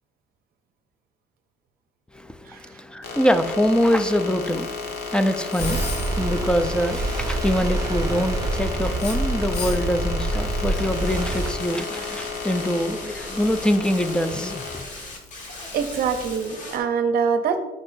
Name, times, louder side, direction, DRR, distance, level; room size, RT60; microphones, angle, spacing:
voice 1, 2.1-14.9, equal, 5° left, 9 dB, 0.4 m, -24 dB
sound 1, 3.0-16.5, left 5 dB, 85° left, 1.2 m, -33 dB
sound 2, 5.6-11.5, right 2 dB, 20° right, 0.9 m, -26 dB
sound 3, 10.7-16.8, left 2 dB, 45° left, 1.6 m, -39 dB
voice 2, 15.7-17.6, right 6 dB, 65° right, 8 dB, 0.6 m, -24 dB
8.6 x 5.4 x 2.6 m, 1.1 s
cardioid pair, 110°, 17 cm